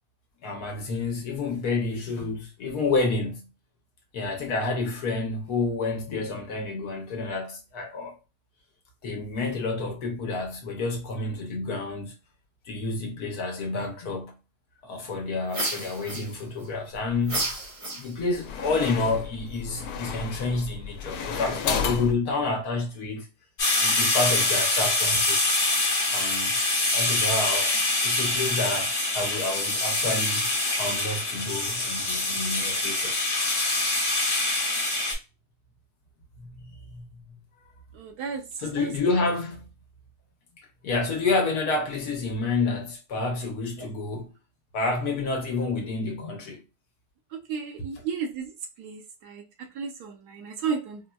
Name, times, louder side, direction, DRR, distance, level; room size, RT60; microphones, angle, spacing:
voice 1, 0.4-3.5 4.1-8.2 9.0-12.2 12.6-14.4 14.8-17.5 17.8-23.3 23.8-25.4 26.1-26.5 26.9-30.4 30.8-33.2 36.4-37.4 38.6-39.7 40.6-44.3 44.7-46.6, left 3 dB, 70° left, 1.2 m, -29 dB
sound 1, 15.5-16.7 17.2-18.4, right 2 dB, 35° right, 0.6 m, -32 dB
sound 2, 16.9-17.5 18.2-22.1, left 6 dB, 90° left, 1.2 m, -32 dB
sound 3, 23.6-35.1, left 2 dB, 45° left, 1.2 m, -25 dB
voice 2, 38.0-38.4 47.5-48.5 48.8-49.0 49.3-49.4 49.8-51.0, right 6 dB, 75° right, 1.2 m, -32 dB
4.3 x 2.1 x 2.2 m
omnidirectional pair, 1.8 m